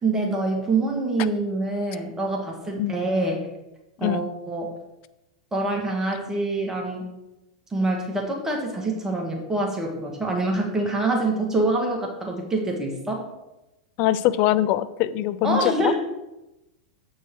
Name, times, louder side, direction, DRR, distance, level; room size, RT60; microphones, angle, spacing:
voice 1, 0.0-3.4 4.0-4.7 5.5-7.1 7.7-13.3 15.4-15.9, right 2 dB, 15° right, 0 dB, 1.6 m, -25 dB
voice 2, 14.0-15.9, left 13 dB, 50° left, 14 dB, 0.5 m, -23 dB
8.0 x 4.7 x 4.6 m, 0.97 s
hypercardioid pair, 100°, 4 cm